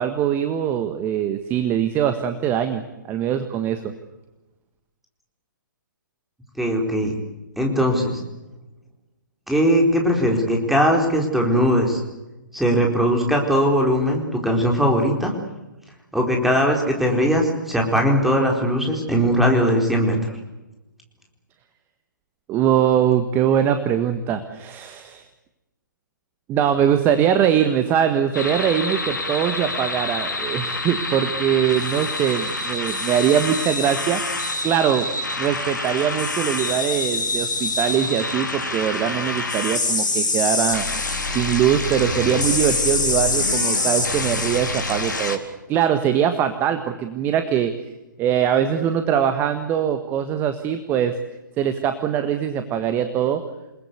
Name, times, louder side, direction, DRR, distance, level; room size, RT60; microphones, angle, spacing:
voice 1, 0.0-2.8 3.1-3.9 22.5-25.3 26.5-34.2 34.6-35.0 35.4-40.8 41.3-45.4 45.7-47.7 48.2-51.1 51.6-53.4, right 9 dB, 20° right, 9 dB, 1.6 m, -22 dB
voice 2, 6.6-7.1 7.6-8.2 9.5-12.0 12.5-15.3 16.1-20.2, equal, ahead, 1 dB, 4.4 m, -19 dB
sound 1, 28.3-45.4, left 3 dB, 65° left, 4.1 m, -25 dB
28.5 x 20.0 x 8.3 m, 1.0 s
figure-of-eight pair, 130°, 11 cm